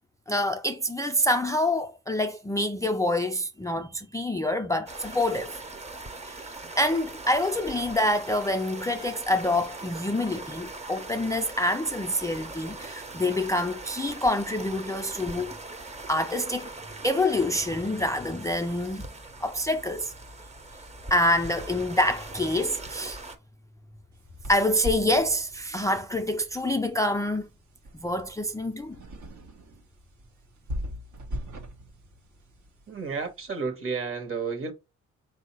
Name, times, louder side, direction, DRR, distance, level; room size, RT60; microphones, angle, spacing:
voice 1, 0.3-5.6 6.2-15.5 16.1-16.7 17.0-19.0 19.4-20.1 21.1-23.2 24.5-27.5 28.0-29.0, left 1 dB, 10° left, 0.4 m, -26 dB
sound 1, 4.9-23.4, right 2 dB, 20° right, 0.7 m, -41 dB
sound 2, 24.1-33.5, equal, 70° right, 1.1 m, -41 dB
voice 2, 32.9-34.7, right 5 dB, 45° right, 1.4 m, -31 dB
3.9 x 2.7 x 4.2 m
cardioid pair, 90°, 30 cm